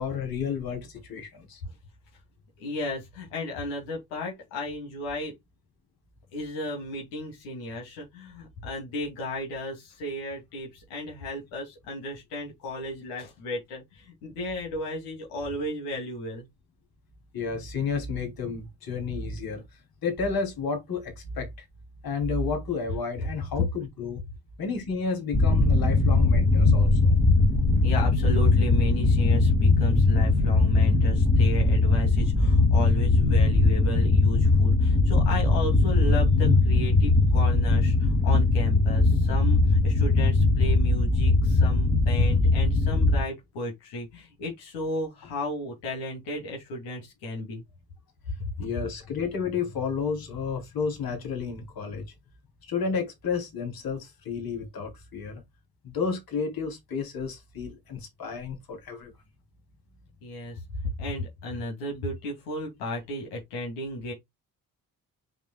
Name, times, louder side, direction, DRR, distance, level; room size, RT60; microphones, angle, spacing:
voice 1, 0.0-1.6 17.3-21.6 22.0-24.2 24.6-27.1 48.6-52.0 52.6-55.4 55.8-59.1, left 5 dB, 45° left, 3.3 m, -31 dB
voice 2, 2.6-5.3 6.3-16.5 27.8-47.6 60.2-60.6 61.0-64.1, left 1 dB, 70° left, 2.7 m, -34 dB
sound 1, 25.3-43.2, left 3 dB, 25° left, 2.5 m, -20 dB
7.0 x 6.2 x 2.3 m
figure-of-eight pair, 40°, 48 cm